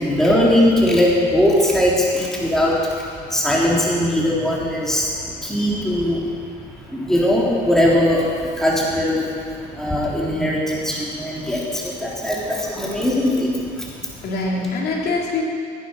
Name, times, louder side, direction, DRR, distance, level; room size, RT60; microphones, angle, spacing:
voice 1, 0.0-13.9 14.2-14.3, left 1 dB, 5° left, -5 dB, 3.6 m, -20 dB
voice 2, 13.9-15.4, left 3 dB, 70° left, -2 dB, 3.4 m, -26 dB
16.0 x 9.9 x 6.5 m, 2.3 s
cardioid pair, 110°, 17 cm